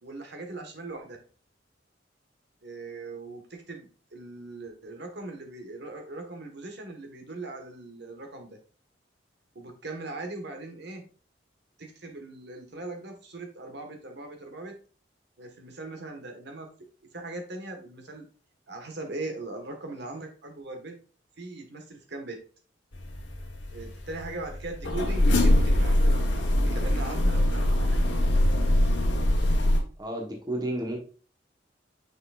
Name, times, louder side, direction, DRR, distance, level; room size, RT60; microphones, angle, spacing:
voice 1, 0.0-1.2 2.6-8.6 9.5-11.1 11.8-14.8 15.4-16.7 17.1-18.2 18.7-20.9 21.4-22.4 23.7-28.0, right 2 dB, 65° right, 4 dB, 1.5 m, -40 dB
sound 1, 22.9-29.8, left 1 dB, 65° left, 1.3 m, -23 dB
voice 2, 30.0-31.0, right 1 dB, 20° right, 1 dB, 1.2 m, -31 dB
6.2 x 6.1 x 2.5 m, 0.38 s
head